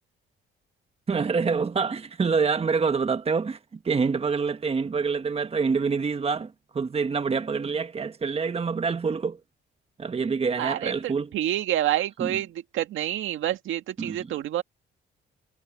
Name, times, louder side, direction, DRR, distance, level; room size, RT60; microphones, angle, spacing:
voice 1, 1.1-3.6 3.8-9.4 10.0-11.3 12.2-12.4 14.0-14.3, right 5 dB, 30° right, 1.3 m, -26 dB
voice 2, 10.6-14.6, right 12 dB, 80° right, 1.9 m, -28 dB
cardioid pair, 90°, 20 cm